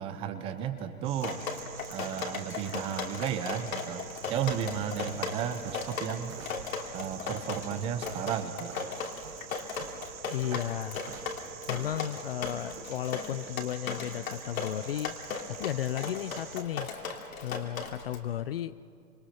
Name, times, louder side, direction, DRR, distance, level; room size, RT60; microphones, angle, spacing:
voice 1, 0.0-1.4 1.9-6.4 6.9-8.8, right 9 dB, 15° right, 9 dB, 0.6 m, -34 dB
sound 1, 1.0-16.6, right 11 dB, 45° right, 1.8 m, -48 dB
Drip, 1.2-18.2, left 5 dB, 70° left, 3.0 m, -37 dB
sound 2, 4.4-12.6, right 6 dB, 65° right, 4.3 m, -50 dB
voice 2, 10.3-11.0 11.7-15.1 15.5-16.9 17.4-18.8, left 11 dB, 45° left, 16 dB, 0.5 m, -34 dB
26.5 x 24.0 x 5.8 m, 2.3 s
hypercardioid pair, 140°, 43 cm